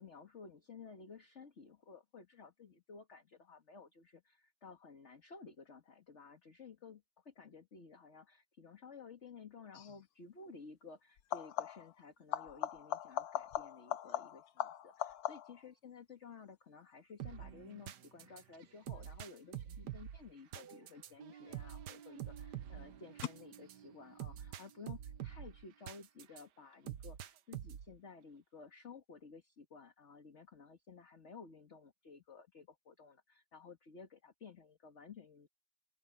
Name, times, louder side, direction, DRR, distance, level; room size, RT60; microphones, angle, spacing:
voice 1, 0.0-35.5, left 5 dB, 40° left, 2.1 m, -55 dB
sound 1, 9.7-10.0 11.2-12.0 12.3-15.7 21.1-21.7 23.2-23.3, left 10 dB, 65° left, 1.2 m, -40 dB
sound 2, 17.2-26.4 26.9-28.0, right 11 dB, 70° right, 1.5 m, -47 dB
open air
omnidirectional pair, 2.0 m